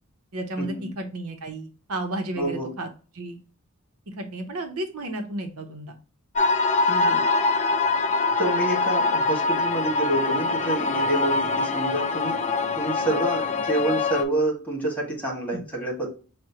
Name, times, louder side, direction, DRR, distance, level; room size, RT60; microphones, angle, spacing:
voice 1, 0.3-2.9 3.1-3.4 4.2-5.9 15.5-15.6, right 2 dB, 70° right, 5 dB, 0.8 m, -32 dB
voice 2, 2.4-2.7 6.9-7.2 8.4-12.4 12.8-16.1, right 1 dB, 5° left, -2 dB, 1.4 m, -27 dB
sound 1, 6.4-14.2, left 3 dB, 30° left, 0.4 m, -24 dB
6.0 x 2.1 x 2.7 m, 0.36 s
head